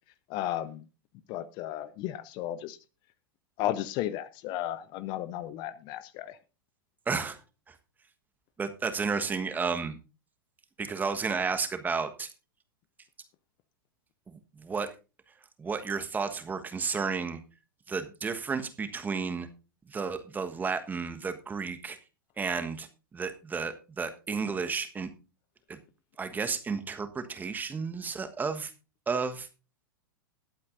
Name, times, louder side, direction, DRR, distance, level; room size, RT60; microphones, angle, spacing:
voice 1, 0.3-0.8 1.3-2.8 3.6-6.4, left 12 dB, 40° left, 0.6 m, -34 dB
voice 2, 7.1-7.4 7.7-7.8 8.6-10.0 10.8-12.3 14.3-14.9 15.6-17.4 17.9-19.5 19.9-22.0 22.4-22.9 23.1-25.1 25.7-25.8 26.2-28.7 29.1-29.5, right 5 dB, 15° right, 1.3 m, -32 dB
20.5 x 8.5 x 2.6 m
figure-of-eight pair, 100°, 12 cm